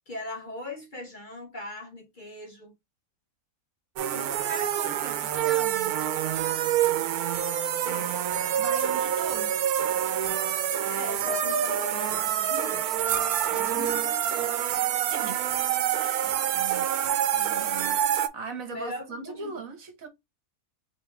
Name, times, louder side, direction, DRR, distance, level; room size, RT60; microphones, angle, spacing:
voice 1, 0.1-2.7 4.1-4.7 7.8-8.1 10.9-13.0 13.5-14.5 16.2-16.3 18.7-19.5, left 1 dB, 40° left, 1.0 m, -40 dB
voice 2, 3.9-6.0 8.6-9.6 13.7-14.0 15.1-15.4 15.9-20.1, right 4 dB, 65° right, 1.5 m, -40 dB
sound 1, 4.0-18.3, right 10 dB, 85° right, 1.1 m, -27 dB
4.3 x 3.1 x 3.3 m
omnidirectional pair, 1.5 m